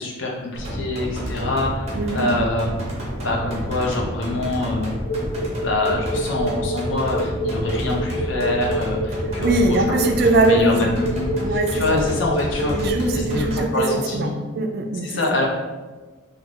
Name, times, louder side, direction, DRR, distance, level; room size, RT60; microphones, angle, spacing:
voice 1, 0.0-2.8 3.2-5.0 5.6-9.8 10.2-14.3 15.0-15.5, left 2 dB, 70° left, -2 dB, 0.7 m, -25 dB
sound 1, 0.5-13.6, equal, 35° right, 0.8 m, -29 dB
voice 2, 1.9-2.3 9.4-10.9 11.4-12.0 12.7-15.2, right 2 dB, 50° right, 4 dB, 0.4 m, -21 dB
sound 2, 5.0-13.4, equal, 20° left, 0.3 m, -27 dB
3.7 x 2.2 x 3.1 m, 1.3 s
head